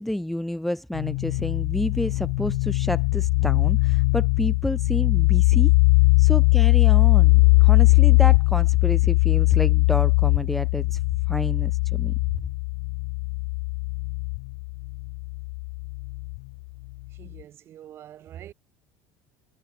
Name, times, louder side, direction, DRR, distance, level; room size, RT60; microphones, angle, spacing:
voice 1, 0.0-5.7 6.2-11.0 11.3-12.1, left 1 dB, ahead, 1.1 m, -29 dB
sound 1, 0.9-16.4, left 31 dB, 80° left, 0.5 m, -20 dB
voice 2, 17.1-18.5, right 11 dB, 35° right, 4.6 m, -44 dB
cardioid pair, 170°, 7 cm